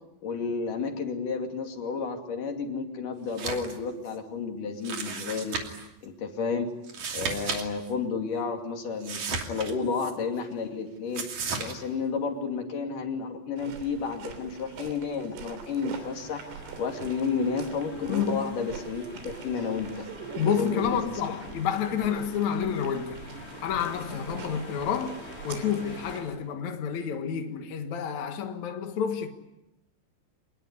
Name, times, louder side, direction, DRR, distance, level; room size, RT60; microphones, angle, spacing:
voice 1, 0.2-5.6 6.0-6.7 7.1-11.3 11.6-16.4 16.8-20.1 20.6-21.2, left 5 dB, 45° left, 3.6 m, -31 dB
sound 1, 3.3-3.8 4.1-4.2 4.8-5.9 6.8-7.6 7.9-8.0 9.0-10.1 11.1-11.7, right 5 dB, 45° right, 3.5 m, -34 dB
sound 2, 13.6-26.4, right 6 dB, 90° right, 5.8 m, -43 dB
sound 3, 15.9-26.2, left 2 dB, 20° left, 4.0 m, -47 dB
voice 2, 18.1-18.5 20.4-23.2 23.6-25.2 25.4-29.3, left 8 dB, 65° left, 1.9 m, -29 dB
26.5 x 21.0 x 9.8 m
omnidirectional pair, 5.7 m